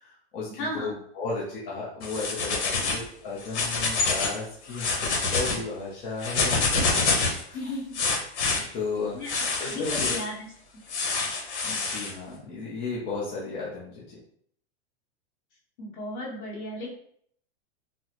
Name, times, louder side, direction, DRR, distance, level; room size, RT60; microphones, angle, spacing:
voice 1, 0.0-7.2 7.5-7.7 8.6-10.1 11.6-14.2, left 3 dB, 20° left, -6 dB, 0.4 m, -34 dB
voice 2, 0.6-0.9 7.5-8.0 8.6-8.8 9.1-10.5 15.8-16.9, left 1 dB, 45° left, -3 dB, 1.3 m, -35 dB
sound 1, 2.0-3.0 3.4-4.4 4.7-5.6 6.2-7.4 7.9-8.6 9.3-10.2 10.9-12.1, left 3 dB, 90° left, 0.9 m, -26 dB
4.0 x 2.0 x 2.9 m, 0.65 s
supercardioid pair, 155°, 34 cm